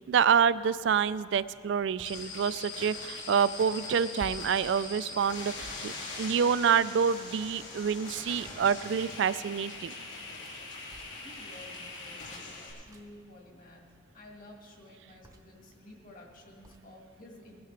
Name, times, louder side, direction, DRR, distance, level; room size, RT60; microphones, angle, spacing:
voice 1, 0.1-9.9, right 7 dB, 70° right, 16 dB, 0.3 m, -27 dB
sound 1, 2.0-12.7, left 3 dB, 80° left, 3.2 m, -42 dB
sound 2, 2.0-2.3 4.2-4.6 5.6-6.8 8.4-9.0 10.9-11.2 12.8-13.2 15.2-15.6 16.6-16.9, right 1 dB, 20° right, 0.6 m, -50 dB
voice 2, 11.1-17.6, left 1 dB, 45° left, 0 dB, 1.8 m, -52 dB
19.5 x 10.5 x 3.3 m, 2.1 s
head